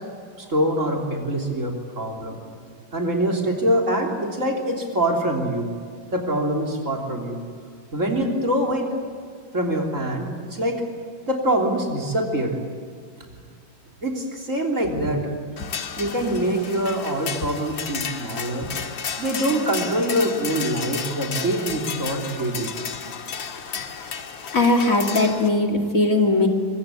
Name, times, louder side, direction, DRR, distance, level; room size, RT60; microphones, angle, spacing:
voice 1, 0.4-2.4 2.9-5.7 6.1-7.4 7.9-8.9 9.5-10.8 11.3-12.6 13.3-13.4 14.0-15.3 16.0-18.7 19.2-22.8, right 1 dB, 40° right, 1 dB, 3.8 m, -24 dB
sound 1, 15.6-25.5, left 7 dB, 80° left, 2.3 m, -33 dB
voice 2, 24.5-26.5, left 2 dB, 45° left, 2 dB, 2.8 m, -19 dB
25.0 x 24.0 x 8.5 m, 2.1 s
omnidirectional pair, 2.1 m